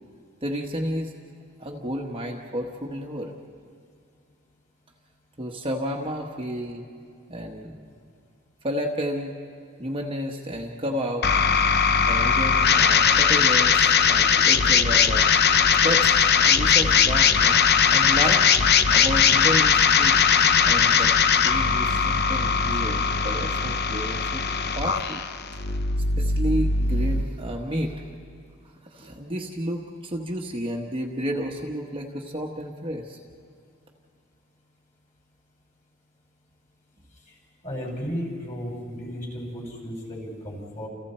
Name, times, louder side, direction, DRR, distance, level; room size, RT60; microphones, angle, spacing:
voice 1, 0.4-1.1 1.6-3.3 5.4-6.9 7.3-7.8 8.6-9.3 9.8-11.3 12.1-15.3 15.8-17.6 17.9-18.5 18.9-20.2 20.6-21.1 21.4-24.4 24.7-25.3 25.7-25.8 26.2-28.0 28.6-33.2, equal, 25° right, 0 dB, 1.2 m, -31 dB
sound 1, 11.2-27.2, left 6 dB, 50° left, 0.8 m, -20 dB
voice 2, 37.6-40.9, equal, 35° left, -2 dB, 6.2 m, -34 dB
30.0 x 28.5 x 4.4 m, 2.3 s
head